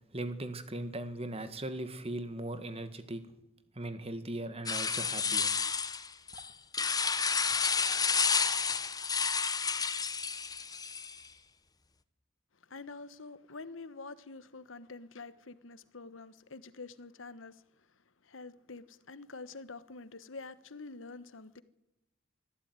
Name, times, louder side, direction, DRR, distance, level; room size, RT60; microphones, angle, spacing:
voice 1, 0.1-3.2 3.8-5.5, right 1 dB, 30° right, 2.1 m, -38 dB
sound 1, 4.7-11.3, left 5 dB, 20° left, 1.0 m, -31 dB
voice 2, 12.6-17.9 18.2-21.6, left 3 dB, 80° left, 1.3 m, -47 dB
25.0 x 14.5 x 9.7 m
head